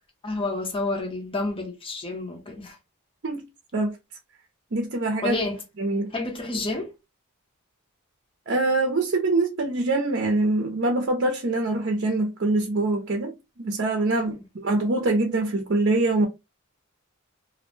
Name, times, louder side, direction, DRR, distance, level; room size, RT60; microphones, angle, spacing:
voice 1, 0.2-2.8 5.2-5.6 6.1-6.9 14.4-14.5, left 2 dB, 25° left, 0.7 m, -29 dB
voice 2, 4.7-5.4 5.8-6.1 8.5-16.3, right 2 dB, 55° right, 0.5 m, -24 dB
2.5 x 2.0 x 3.1 m
head